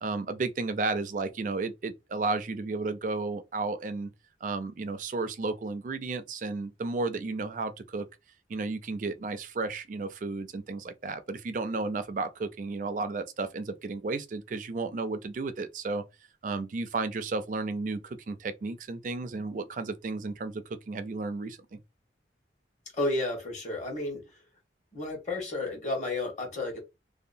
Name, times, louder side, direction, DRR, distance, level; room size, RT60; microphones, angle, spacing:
voice 1, 0.0-4.1 4.4-8.1 8.5-16.0 16.4-21.8, right 3 dB, 45° right, 0.3 m, -33 dB
voice 2, 22.9-24.2 24.9-26.8, left 2 dB, 40° left, 1.1 m, -32 dB
2.7 x 2.2 x 2.5 m
head